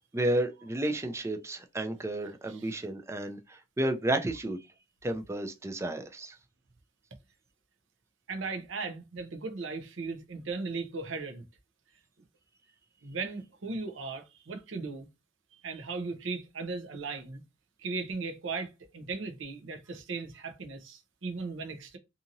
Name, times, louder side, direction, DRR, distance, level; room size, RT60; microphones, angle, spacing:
voice 1, 0.1-4.6 5.0-6.3, right 1 dB, 15° right, 0.4 m, -32 dB
voice 2, 8.3-11.4 13.0-15.1 15.6-17.4 17.8-22.0, right 4 dB, 85° right, 0.7 m, -37 dB
2.8 x 2.6 x 2.6 m
head